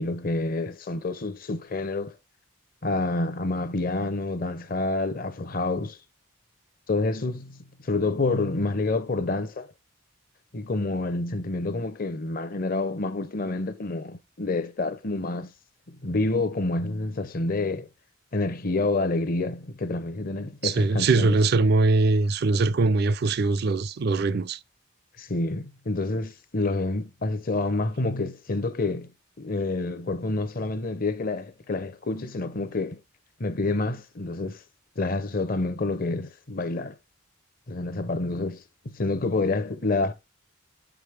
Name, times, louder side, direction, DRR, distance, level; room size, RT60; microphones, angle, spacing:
voice 1, 0.0-2.2 2.8-6.0 6.9-9.7 10.5-15.5 15.9-17.9 18.3-21.4 25.2-29.1 29.4-33.0 33.4-34.6 35.0-37.0 37.7-40.1, left 2 dB, 45° left, 0.7 m, -28 dB
voice 2, 20.6-24.6, right 3 dB, 50° right, 0.4 m, -22 dB
7.5 x 5.0 x 3.3 m
head